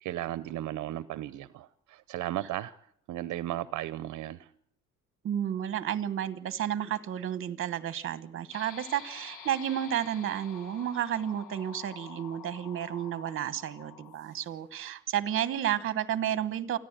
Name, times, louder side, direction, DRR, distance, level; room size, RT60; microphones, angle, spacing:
voice 1, 0.0-2.7 3.1-4.5, right 14 dB, 70° right, 16 dB, 0.7 m, -35 dB
voice 2, 5.2-16.8, right 10 dB, 45° right, 15 dB, 1.2 m, -32 dB
sound 1, 8.5-14.7, left 7 dB, 75° left, 1.9 m, -48 dB
28.0 x 10.5 x 8.8 m, 0.67 s
cardioid pair, 170°, 31 cm